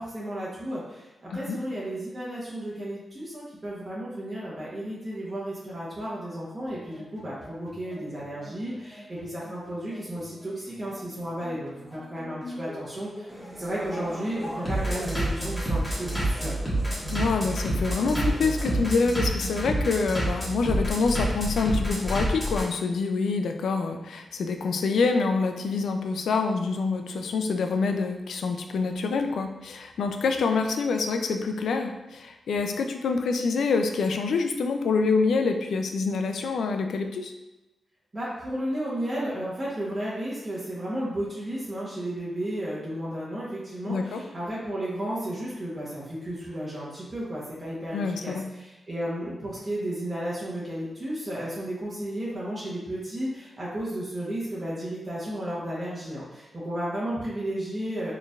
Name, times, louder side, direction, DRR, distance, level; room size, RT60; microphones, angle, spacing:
voice 1, 0.0-13.3 13.6-16.6 38.1-58.1, right 1 dB, 35° right, -8 dB, 1.0 m, -33 dB
Bass drum, 6.7-22.6, right 1 dB, 10° left, 1.5 m, -29 dB
sound 1, 13.3-18.9, right 1 dB, 15° right, 0.6 m, -41 dB
voice 2, 17.1-37.3 43.9-44.2 47.9-48.4, left 4 dB, 85° left, 5 dB, 0.4 m, -26 dB
4.2 x 3.2 x 2.4 m, 1.0 s
cardioid pair, 75°, 0 cm